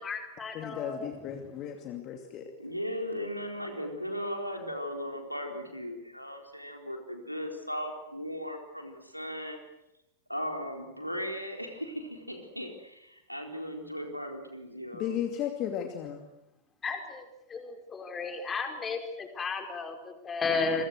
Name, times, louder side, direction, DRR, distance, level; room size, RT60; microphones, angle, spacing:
voice 1, 0.0-1.1 1.4-1.5 16.8-20.9, left 4 dB, 20° left, 5 dB, 4.8 m, -34 dB
voice 2, 0.5-2.5 14.9-16.3, left 10 dB, 35° left, 5 dB, 2.7 m, -35 dB
voice 3, 2.6-9.6 10.3-15.2, equal, 90° left, 3 dB, 4.2 m, -37 dB
29.0 x 23.5 x 8.0 m, 0.86 s
figure-of-eight pair, 90°, 0 cm